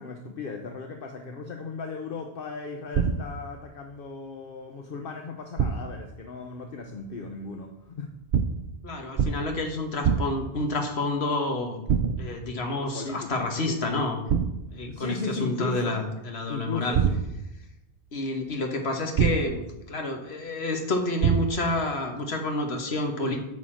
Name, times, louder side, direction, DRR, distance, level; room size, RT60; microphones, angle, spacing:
voice 1, 0.0-8.1 12.8-13.8 14.9-16.0 16.5-17.2, left 3 dB, 60° left, 4 dB, 1.0 m, -36 dB
sound 1, 2.9-3.5 5.6-6.0 8.3-8.8 9.2-9.6 10.0-10.6 11.9-12.4 14.3-14.8 16.9-17.6 19.2-19.7 21.2-21.8, right 7 dB, 60° right, 0.7 m, -25 dB
voice 2, 8.8-11.8 12.2-14.2 14.7-17.0 18.1-19.6 19.9-23.4, left 2 dB, 85° left, 3 dB, 1.6 m, -29 dB
9.3 x 4.2 x 7.3 m, 0.91 s
omnidirectional pair, 1.1 m